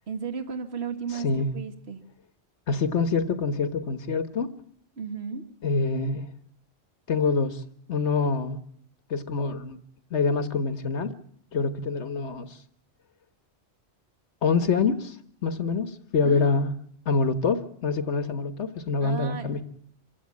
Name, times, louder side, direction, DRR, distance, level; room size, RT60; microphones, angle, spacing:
voice 1, 0.1-1.3 1.5-2.0 5.0-5.4 16.2-16.7 19.0-19.5, right 5 dB, 70° right, 6 dB, 2.1 m, -34 dB
voice 2, 1.1-1.5 2.7-4.5 5.6-6.3 7.1-7.6 7.9-8.6 9.1-9.8 10.1-11.1 11.5-12.6 14.4-15.2 15.4-16.7 17.0-19.6, left 4 dB, 85° left, 10 dB, 1.6 m, -25 dB
26.5 x 16.0 x 8.5 m, 0.63 s
omnidirectional pair, 1.1 m